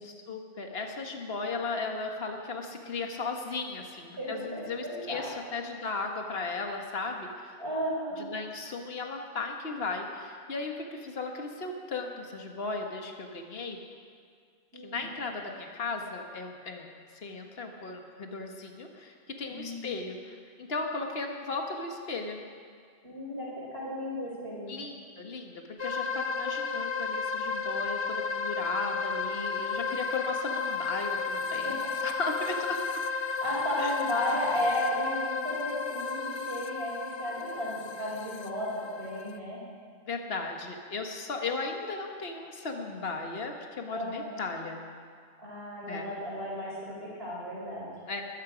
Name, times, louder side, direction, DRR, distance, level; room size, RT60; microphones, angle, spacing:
voice 1, 0.0-7.6 8.2-13.8 14.7-16.9 17.2-22.4 24.7-32.8 33.8-34.0 40.0-44.8 45.8-46.1 48.1-48.2, left 3 dB, 65° left, 3 dB, 1.6 m, -36 dB
voice 2, 4.2-5.3 7.6-8.3 14.7-15.0 19.5-19.9 23.0-24.7 31.6-31.9 33.2-39.6 43.9-44.4 45.4-47.9, equal, 70° right, -5 dB, 5.0 m, -34 dB
sound 1, 25.8-39.4, left 5 dB, 35° left, 0.5 m, -33 dB
21.0 x 13.0 x 5.1 m, 2.1 s
omnidirectional pair, 1.1 m